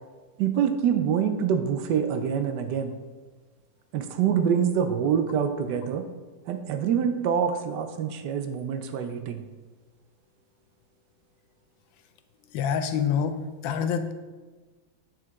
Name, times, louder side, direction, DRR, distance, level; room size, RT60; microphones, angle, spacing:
voice 1, 0.4-2.9 3.9-6.1 6.5-9.4, right 8 dB, 75° right, 8 dB, 1.1 m, -25 dB
voice 2, 12.5-13.4 13.6-14.1, left 7 dB, 85° left, 9 dB, 1.4 m, -26 dB
8.4 x 5.1 x 3.5 m, 1.3 s
omnidirectional pair, 2.1 m